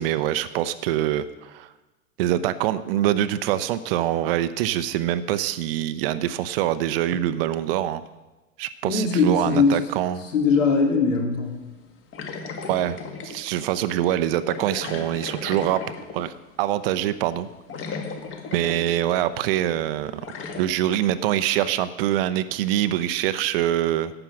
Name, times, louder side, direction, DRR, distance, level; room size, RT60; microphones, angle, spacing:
voice 1, 0.0-1.7 2.2-8.0 8.6-10.3 12.7-15.8 16.1-17.5 18.5-20.2 20.6-24.1, right 12 dB, 45° right, 13 dB, 0.7 m, -24 dB
voice 2, 8.8-9.8 10.3-11.6, left 4 dB, 65° left, 1 dB, 2.9 m, -20 dB
sound 1, 12.1-13.4 14.5-16.4 17.4-17.5 17.7-19.1 19.4-19.5 20.2-20.6, left 4 dB, 30° left, 1.8 m, -35 dB
13.0 x 8.9 x 6.0 m, 1.1 s
figure-of-eight pair, 100°, 41 cm